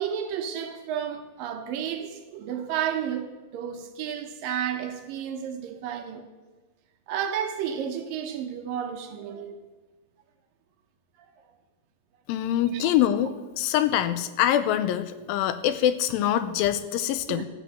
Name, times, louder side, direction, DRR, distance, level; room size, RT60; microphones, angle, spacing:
voice 1, 0.0-6.2 7.1-9.6 12.7-12.9 17.3-17.5, right 9 dB, 75° right, 2.5 m, -32 dB
voice 2, 12.3-17.5, left 11 dB, 80° left, 2.3 m, -24 dB
12.5 x 8.1 x 7.2 m
omnidirectional pair, 4.2 m